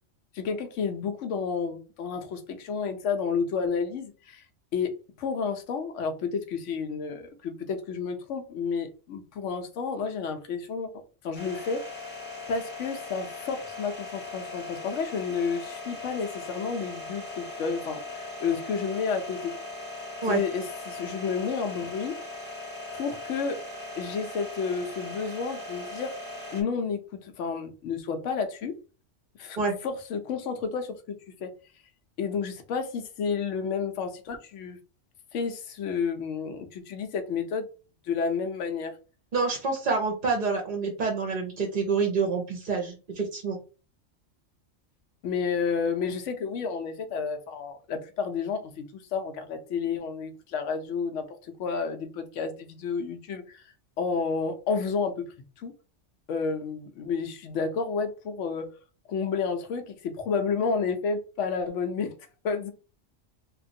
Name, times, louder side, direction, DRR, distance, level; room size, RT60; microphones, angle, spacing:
voice 1, 0.3-4.4 4.7-10.9 11.2-12.2 12.5-19.5 20.3-22.2 22.9-23.6 24.0-26.2 26.5-28.7 29.4-29.6 29.8-31.5 32.2-34.8 35.3-37.7 38.1-38.9 45.2-53.6 54.0-55.2 55.6-55.7 56.3-58.7 59.1-62.1 62.4-62.7, left 5 dB, 85° left, 7 dB, 1.0 m, -31 dB
sound 1, 11.4-26.6, left 2 dB, 10° left, 0.8 m, -39 dB
voice 2, 39.3-43.6, right 4 dB, 50° right, 1 dB, 0.7 m, -27 dB
3.0 x 2.4 x 2.6 m, 0.34 s
omnidirectional pair, 1.2 m